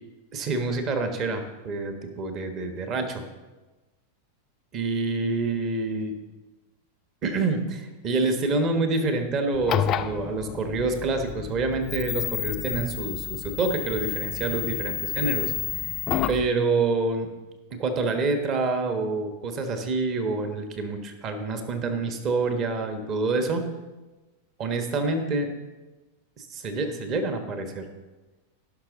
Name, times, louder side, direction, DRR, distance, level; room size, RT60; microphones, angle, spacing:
voice 1, 0.3-3.2 4.7-6.1 7.2-15.5 15.8-15.9 16.3-17.3 17.7-23.6 24.6-25.5 26.4-27.9, right 3 dB, 35° right, 6 dB, 1.2 m, -27 dB
sound 1, 9.5-16.5, left 11 dB, 30° left, 0.4 m, -30 dB
16.5 x 6.0 x 3.8 m, 1.2 s
figure-of-eight pair, 90°, 0 cm